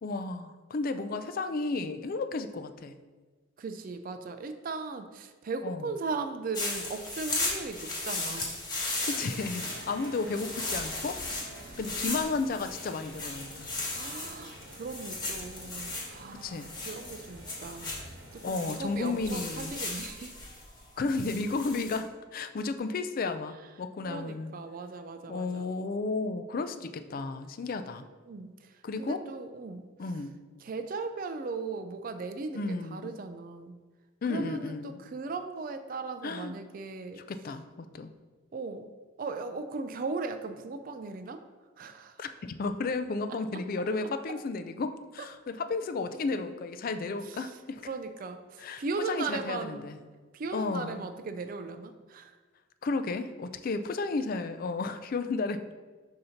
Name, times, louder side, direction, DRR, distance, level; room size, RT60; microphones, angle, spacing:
voice 1, 0.0-2.9 5.6-5.9 8.3-8.4 8.7-11.4 11.8-13.7 16.3-16.7 18.4-19.7 21.0-24.5 25.3-28.1 28.8-29.2 30.0-30.4 32.5-33.1 34.2-35.0 36.2-36.6 37.2-38.1 42.2-47.8 48.6-50.0 50.5-51.0 52.8-55.6, left 3 dB, 45° left, 10 dB, 0.4 m, -33 dB
voice 2, 3.6-8.6 13.9-17.9 18.5-20.3 24.1-25.7 28.3-28.5 29.0-29.9 30.6-33.7 34.3-37.2 38.5-38.9 39.2-41.4 41.8-42.1 47.9-48.4 48.8-49.9 50.3-52.3, right 4 dB, 45° right, 8 dB, 0.4 m, -37 dB
sound 1, 6.5-22.0, left 2 dB, 20° left, 1.2 m, -36 dB
sound 2, 9.3-19.7, right 2 dB, 70° right, 1.0 m, -49 dB
6.5 x 2.8 x 5.6 m, 1.4 s
head